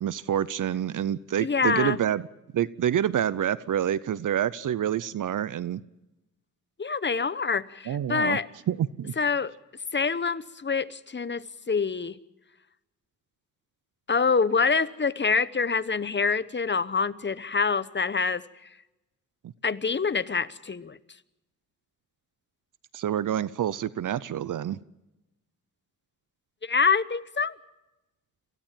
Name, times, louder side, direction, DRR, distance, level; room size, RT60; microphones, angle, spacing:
voice 1, 0.0-2.3 2.5-5.8 7.9-8.4 8.7-9.1 22.9-24.8, right 10 dB, 80° right, 18 dB, 0.7 m, -27 dB
voice 2, 1.4-2.0 6.8-8.5 9.2-9.5 9.9-12.2 14.1-18.4 19.6-21.0 26.6-27.5, left 5 dB, 35° left, 15 dB, 1.0 m, -26 dB
27.5 x 16.0 x 7.4 m, 0.97 s
cardioid pair, 85°, 31 cm